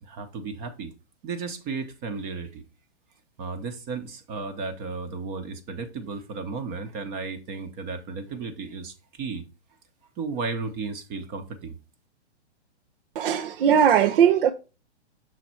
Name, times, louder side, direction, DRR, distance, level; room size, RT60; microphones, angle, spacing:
voice 1, 0.0-0.9 1.2-2.6 3.4-9.4 10.2-11.7, right 4 dB, 30° right, 0.9 m, -34 dB
voice 2, 13.2-14.5, right 8 dB, 55° right, 0.6 m, -19 dB
6.3 x 4.1 x 4.2 m
hypercardioid pair, 130°, 34 cm